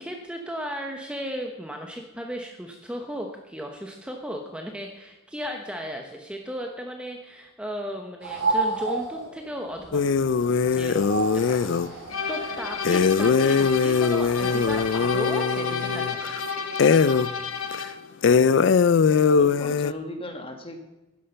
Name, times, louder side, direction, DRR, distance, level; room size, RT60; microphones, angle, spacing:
voice 1, 0.0-10.1 10.7-11.1 11.5-16.4, equal, 5° right, 2 dB, 0.9 m, -35 dB
sound 1, 8.2-15.2, right 3 dB, 90° right, 4.9 m, -33 dB
sound 2, 9.9-11.9 12.8-16.4 16.8-17.3 17.7-17.8 18.2-19.9, left 5 dB, 60° left, 0.4 m, -21 dB
sound 3, 12.1-18.0, left 5 dB, 80° left, 1.4 m, -32 dB
voice 2, 19.1-20.8, left 1 dB, 25° left, 5 dB, 1.5 m, -37 dB
12.0 x 10.0 x 5.6 m, 1.0 s
head